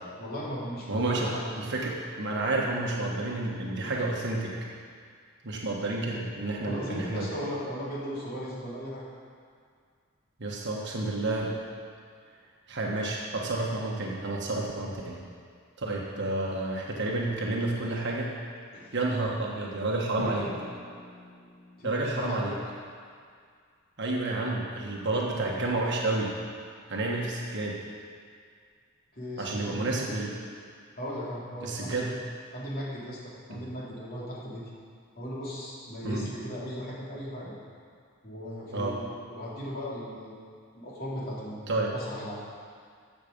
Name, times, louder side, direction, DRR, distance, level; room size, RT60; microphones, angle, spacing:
voice 1, 0.2-1.5 6.6-9.0 18.7-18.9 21.8-22.5 29.1-29.9 31.0-32.1 32.5-34.6 35.2-37.5 38.2-40.4 40.7-41.6 41.9-42.4, equal, 45° left, -6 dB, 3.0 m, -37 dB
voice 2, 0.9-1.3 1.6-4.5 5.4-7.3 10.4-11.5 12.7-15.2 15.8-18.3 18.9-20.5 21.8-22.5 24.0-26.3 26.9-27.7 29.4-30.3 31.6-32.1 33.5-33.6 36.0-36.2 38.7-39.0 41.7-41.9, right 2 dB, 60° right, -2 dB, 1.3 m, -30 dB
Drum, 20.2-22.1, left 1 dB, 65° left, 2.9 m, -40 dB
14.0 x 7.3 x 5.3 m, 2.1 s
head